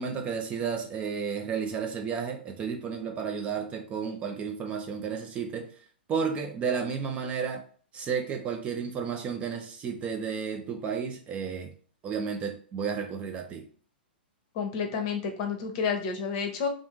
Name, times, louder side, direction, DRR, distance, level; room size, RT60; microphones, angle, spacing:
voice 1, 0.0-5.7 6.1-7.6 7.9-11.7 12.0-13.7, right 6 dB, 20° right, 4 dB, 0.4 m, -32 dB
voice 2, 14.5-16.7, left 6 dB, 40° left, 4 dB, 0.7 m, -30 dB
2.6 x 2.4 x 3.6 m, 0.43 s
figure-of-eight pair, 105°, 6 cm